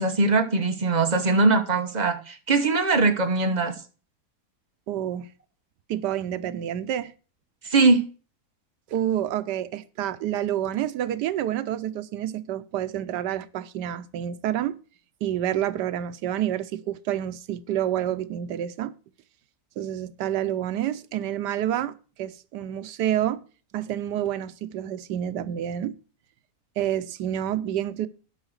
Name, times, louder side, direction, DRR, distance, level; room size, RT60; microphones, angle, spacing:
voice 1, 0.0-3.7 7.6-8.0, right 3 dB, 30° right, 1.2 m, -21 dB
voice 2, 4.9-5.3 5.9-7.1 8.9-14.8 15.2-18.9 19.8-23.4 23.7-26.0 26.8-28.1, right 11 dB, 90° right, 1.3 m, -28 dB
11.0 x 5.7 x 6.4 m
omnidirectional pair, 1.8 m